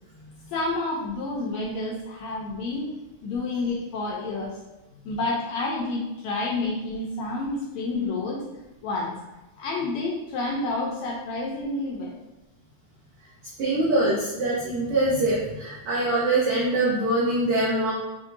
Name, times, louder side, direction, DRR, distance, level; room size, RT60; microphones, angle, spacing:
voice 1, 0.5-2.9 3.2-4.6 5.1-8.4 8.8-9.2 9.6-12.2, left 2 dB, 80° left, -2 dB, 1.7 m, -29 dB
voice 2, 13.6-17.9, right 2 dB, 75° right, -6 dB, 1.3 m, -23 dB
5.8 x 2.6 x 2.6 m, 1.1 s
omnidirectional pair, 3.5 m